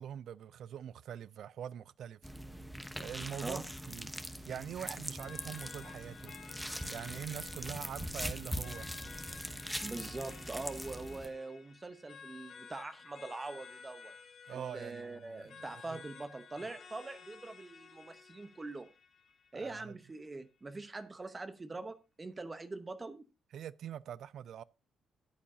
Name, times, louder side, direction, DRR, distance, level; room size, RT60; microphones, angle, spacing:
voice 1, 0.0-2.2 3.0-4.1 4.5-6.3 6.9-8.9 14.5-16.0 19.5-20.0 23.5-24.6, right 9 dB, 70° right, 0.4 m, -44 dB
sound 1, 2.2-11.3, equal, ahead, 1.0 m, -42 dB
sound 2, 5.2-20.2, left 6 dB, 55° left, 1.5 m, -54 dB
voice 2, 9.8-14.1 14.5-18.9 19.5-23.3, right 3 dB, 25° right, 0.8 m, -43 dB
13.5 x 8.5 x 2.7 m
cardioid pair, 90°, 0 cm